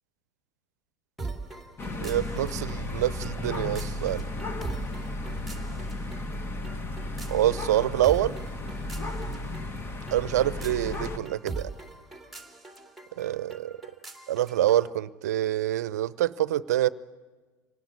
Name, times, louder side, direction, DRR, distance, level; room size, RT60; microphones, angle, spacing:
sound 1, 1.2-14.9, right 3 dB, ahead, 2.4 m, -42 dB
sound 2, 1.8-11.2, left 2 dB, 25° left, 1.9 m, -34 dB
voice 1, 1.9-4.2 7.3-8.3 10.1-11.7 13.2-13.7 14.3-16.9, right 13 dB, 70° right, 19 dB, 0.7 m, -26 dB
25.5 x 19.0 x 9.5 m, 1.3 s
figure-of-eight pair, 80°, 9 cm